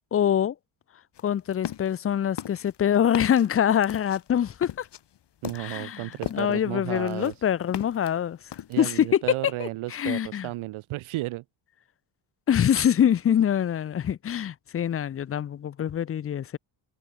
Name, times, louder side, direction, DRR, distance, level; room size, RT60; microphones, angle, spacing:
voice 1, 0.1-0.5 1.2-4.8 5.5-8.4 8.8-9.2 9.6-10.5 12.5-16.6, left 9 dB, 30° left, 0.4 m, -24 dB
sound 1, 1.2-2.0 2.4-6.6 7.0-8.1 8.5-9.0, left 11 dB, 55° left, 1.5 m, -37 dB
voice 2, 5.4-7.3 8.7-11.4, right 18 dB, 80° right, 0.7 m, -33 dB
cardioid pair, 115°, 48 cm